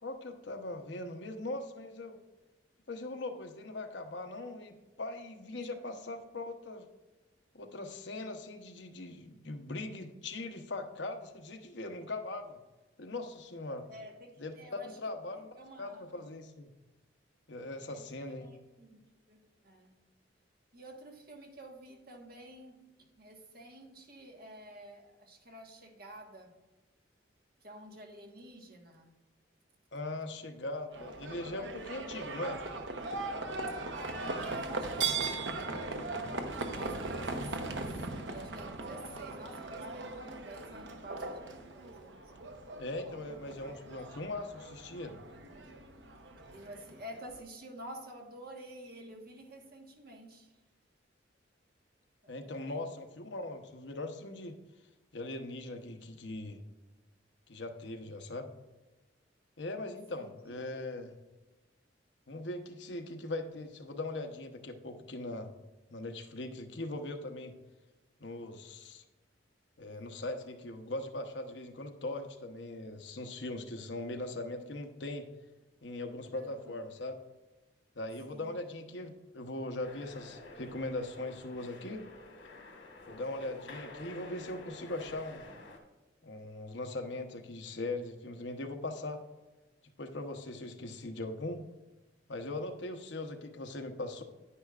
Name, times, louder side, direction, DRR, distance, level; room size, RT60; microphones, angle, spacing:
voice 1, 0.0-2.2 2.9-6.8 7.5-12.6 13.0-13.9 14.4-14.5 14.8-16.7 17.5-18.5 29.9-32.6 42.8-45.2 52.3-54.6 55.1-56.6 57.5-58.5 59.6-61.1 62.3-65.5 65.9-67.5 68.2-69.0 69.8-75.3 75.8-77.1 78.0-82.0 83.0-85.5 86.2-89.2 90.0-91.6 92.3-94.2, left 2 dB, 70° left, 6 dB, 0.9 m, -40 dB
voice 2, 5.5-5.9 13.9-15.0 15.6-16.0 17.9-19.0 19.3-20.0 20.7-26.5 27.6-29.1 33.9-36.3 36.7-41.5 41.7-42.2 46.5-50.5 52.2-52.9 60.1-60.6 76.3-76.7 78.3-78.6, right 1 dB, 50° right, 1 dB, 1.5 m, -50 dB
Livestock farm animals working animals, 30.9-47.4, right 3 dB, 70° right, 0.9 m, -39 dB
sound 1, 79.8-85.8, left 2 dB, 90° left, 1.7 m, -50 dB
10.0 x 9.8 x 2.4 m, 1.1 s
head